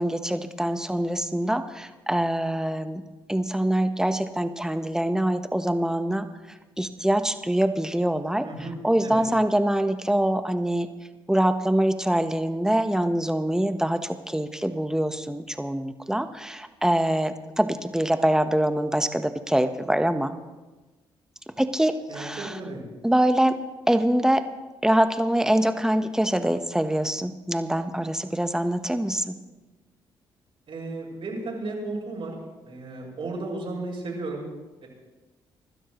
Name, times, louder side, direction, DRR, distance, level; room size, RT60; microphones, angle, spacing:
voice 1, 0.0-3.0 3.3-6.3 6.8-8.4 8.8-10.9 11.3-20.3 21.6-22.5 23.0-23.6 23.9-24.4 24.8-29.3, right 1 dB, 5° right, 9 dB, 1.2 m, -24 dB
voice 2, 8.4-9.2 22.1-22.8 30.7-32.3 32.6-34.5 34.8-34.9, right 2 dB, 60° right, -3 dB, 6.1 m, -34 dB
25.5 x 12.5 x 3.2 m, 1.2 s
hypercardioid pair, 50°, 11 cm